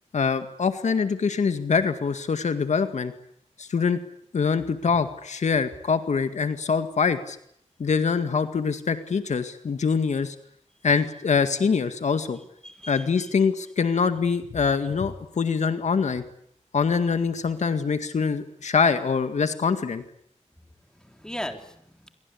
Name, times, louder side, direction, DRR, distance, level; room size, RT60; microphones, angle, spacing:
voice 1, 0.1-3.1 3.6-4.0 4.3-7.4 7.8-10.4 10.8-12.4 12.9-16.2 16.7-20.0, left 5 dB, 75° left, 9 dB, 2.0 m, -24 dB
voice 2, 12.3-13.3 20.6-22.1, equal, 5° left, 5 dB, 3.8 m, -39 dB
27.5 x 24.0 x 8.6 m, 0.69 s
wide cardioid pair, 115°, 12 cm